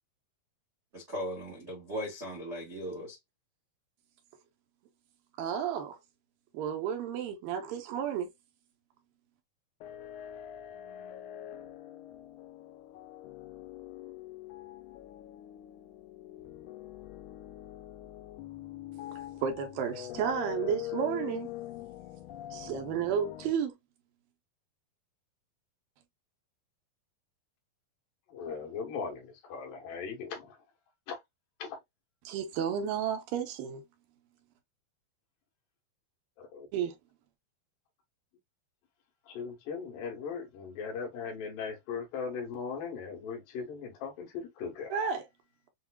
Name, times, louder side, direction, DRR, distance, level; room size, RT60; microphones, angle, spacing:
voice 1, 0.9-3.2, equal, 45° right, 0.8 m, -38 dB
voice 2, 5.4-6.0 6.5-8.3 19.4-21.5 22.5-23.7 32.2-33.8 36.7-36.9 44.9-45.2, right 8 dB, 75° right, 2.6 m, -32 dB
sound 1, 9.8-23.5, left 13 dB, 90° left, 1.7 m, -44 dB
voice 3, 28.3-30.6 31.1-31.2 31.6-31.8 36.4-36.7 39.3-45.0, left 5 dB, 75° left, 3.0 m, -38 dB
7.1 x 2.7 x 2.2 m
omnidirectional pair, 4.2 m